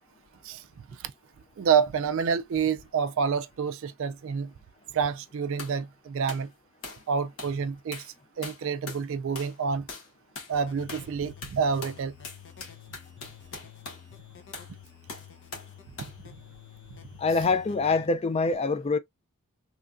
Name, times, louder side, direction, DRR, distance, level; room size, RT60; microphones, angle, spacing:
voice 1, 1.6-4.5 4.9-6.5 7.1-8.0 8.4-9.9 10.5-12.1, right 6 dB, 65° right, 0.3 m, -28 dB
sound 1, 5.6-5.8 6.3-6.5 6.8-7.1 7.4-7.6 7.9-8.1 8.4-9.1 9.4-9.6 9.9-10.1 10.4-10.5 10.9-11.1 11.4-14.1 14.5-14.7 15.1-15.7 16.0-16.2, left 4 dB, 75° left, 1.3 m, -41 dB
sound 2, 10.5-18.1, left 9 dB, 55° left, 0.7 m, -50 dB
voice 2, 17.2-19.0, left 4 dB, 30° left, 0.3 m, -25 dB
3.1 x 2.5 x 2.2 m
head